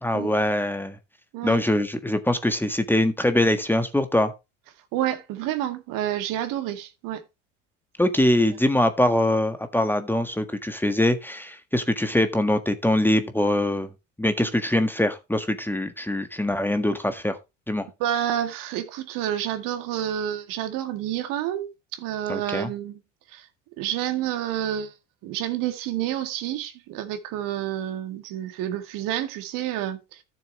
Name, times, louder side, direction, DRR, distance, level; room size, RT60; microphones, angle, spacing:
voice 1, 0.0-1.0 1.4-4.3 8.0-13.9 14.2-17.4 17.7-17.9 22.3-22.7, left 1 dB, 5° left, 1.6 m, -23 dB
voice 2, 4.9-7.2 18.0-23.0 23.3-23.5 23.8-24.9 25.2-30.2, right 11 dB, 60° right, 2.1 m, -29 dB
13.5 x 7.3 x 3.1 m
hypercardioid pair, 70°, 37 cm